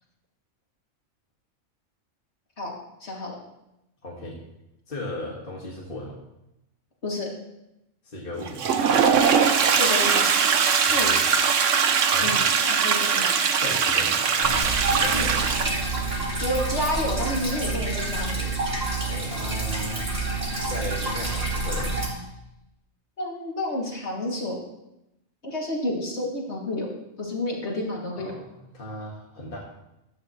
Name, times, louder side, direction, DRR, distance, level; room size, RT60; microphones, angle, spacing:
voice 1, 3.0-3.3 7.0-7.3 9.7-10.2 10.7-11.1 12.2-13.2 13.6-13.7 15.1-15.3 16.4-18.5 23.2-24.6 25.4-26.9 27.2-28.3, left 1 dB, 65° left, -3 dB, 3.0 m, -30 dB
voice 2, 4.0-4.4 4.9-6.2 8.0-8.6 10.8-11.2 12.1-12.3 13.5-15.4 19.0-20.1 20.7-22.0 28.2-29.6, left 1 dB, 45° left, -4 dB, 2.1 m, -36 dB
Toilet flush, 8.4-16.1, right 6 dB, 85° right, 1.2 m, -21 dB
sound 1, 14.4-22.1, right 2 dB, 50° right, 3.0 m, -28 dB
15.5 x 12.5 x 3.2 m, 0.89 s
omnidirectional pair, 1.3 m